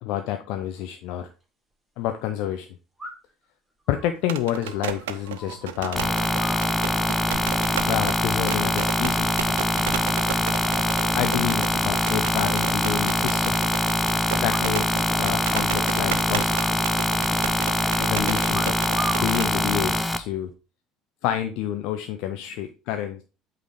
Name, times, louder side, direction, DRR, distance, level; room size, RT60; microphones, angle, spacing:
voice 1, 0.0-1.3 2.0-2.7 3.9-6.1 7.8-9.4 11.1-13.5 14.4-14.9 15.1-16.5 18.0-18.8 19.1-20.5 21.2-23.2, left 11 dB, 60° left, 7 dB, 0.6 m, -28 dB
sound 1, 1.2-1.3 3.0-3.4 3.9-5.9 6.1-7.2 8.0-8.5 8.8-9.2 9.6-10.1 10.4-10.5 10.7-10.8 11.1-11.2 11.5-11.6 12.3-13.3 14.4-15.0 15.3-15.4 15.7-16.0 16.5-17.4 18.5-19.4 20.1-20.5, right 2 dB, 15° right, 4.4 m, -39 dB
sound 2, 4.2-19.5, right 11 dB, 70° right, 0.5 m, -34 dB
sound 3, 5.9-20.2, left 1 dB, 10° left, 0.8 m, -23 dB
8.2 x 4.0 x 4.8 m, 0.32 s
figure-of-eight pair, 60°, 0 cm